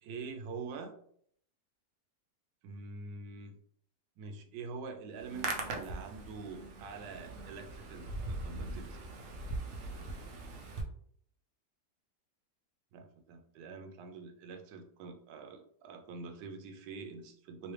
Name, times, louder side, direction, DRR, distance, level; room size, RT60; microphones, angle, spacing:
voice 1, 0.0-1.0 2.6-3.6 4.2-9.1 12.9-17.7, right 4 dB, 85° right, 4 dB, 1.3 m, -45 dB
Hands, 5.1-10.8, right 2 dB, 65° right, 0.8 m, -41 dB
3.1 x 3.0 x 3.2 m, 0.65 s
omnidirectional pair, 1.9 m